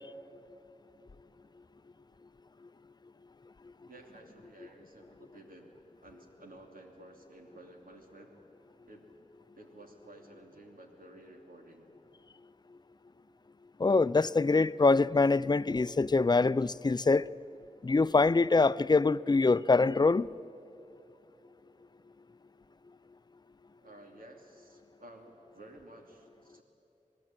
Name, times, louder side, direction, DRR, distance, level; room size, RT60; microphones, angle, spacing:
voice 1, 3.9-5.7 6.0-8.3 8.8-9.1 9.5-11.9 23.8-26.6, right 1 dB, 90° right, 3.0 m, -53 dB
voice 2, 13.8-17.3 17.8-20.3, left 3 dB, 30° left, 0.5 m, -24 dB
27.5 x 19.0 x 9.0 m
wide cardioid pair, 50°, 14 cm